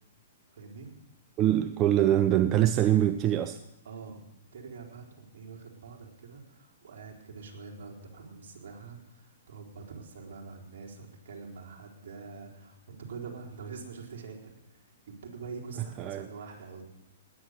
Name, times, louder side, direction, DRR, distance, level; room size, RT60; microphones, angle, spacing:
voice 1, 0.5-1.0 3.8-4.3 4.5-16.9, right 4 dB, 60° right, -1 dB, 4.3 m, -45 dB
voice 2, 1.4-3.6 16.0-16.3, right 12 dB, 30° right, 11 dB, 0.7 m, -24 dB
19.5 x 9.8 x 6.7 m, 0.90 s
hypercardioid pair, 130°, 0 cm